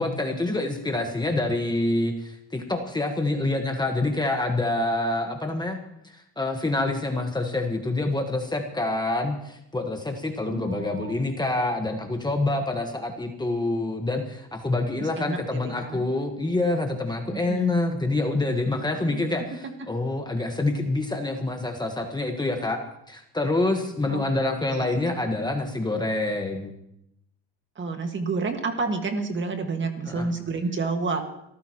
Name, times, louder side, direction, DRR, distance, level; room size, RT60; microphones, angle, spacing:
voice 1, 0.0-5.8 6.1-19.4 19.9-22.8 23.1-26.7 30.1-30.3, left 2 dB, 10° left, 4 dB, 1.4 m, -26 dB
voice 2, 10.5-11.2 15.0-16.0 17.3-17.8 19.0-19.5 19.8-19.9 24.1-24.2 24.7-25.0 27.8-31.2, right 4 dB, 30° right, 5 dB, 1.9 m, -30 dB
26.5 x 14.0 x 3.1 m, 0.77 s
cardioid pair, 125°, 36 cm